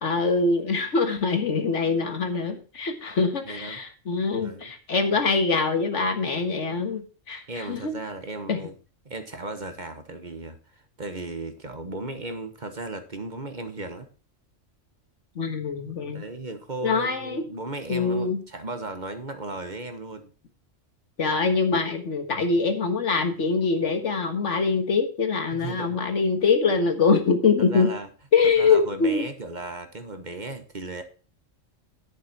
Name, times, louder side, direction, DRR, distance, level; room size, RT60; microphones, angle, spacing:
voice 1, 0.0-8.0 8.5-8.6 15.4-16.2 16.8-17.4 17.9-18.4 21.2-27.9 28.3-29.2, left 4 dB, 70° left, 6 dB, 1.9 m, -24 dB
voice 2, 3.5-3.8 4.4-4.7 5.0-5.3 7.5-8.8 9.0-14.1 16.1-20.3 25.5-26.0 27.6-28.1 28.6-31.0, right 2 dB, 40° right, 8 dB, 1.3 m, -36 dB
10.5 x 8.4 x 4.3 m, 0.37 s
omnidirectional pair, 1.3 m